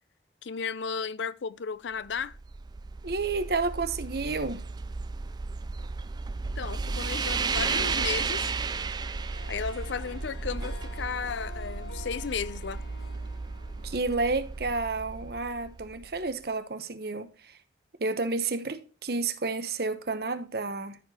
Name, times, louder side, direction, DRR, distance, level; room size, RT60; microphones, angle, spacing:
voice 1, 0.4-2.3 6.6-8.5 9.5-12.8, left 6 dB, 80° left, 0.5 m, -34 dB
sound 1, 2.1-16.2, right 4 dB, 25° right, 0.3 m, -34 dB
voice 2, 3.0-4.6 13.8-17.6 18.0-21.0, right 3 dB, 55° right, 0.9 m, -30 dB
Harp, 8.7-15.0, left 4 dB, 60° left, 2.0 m, -48 dB
13.5 x 4.8 x 2.8 m
head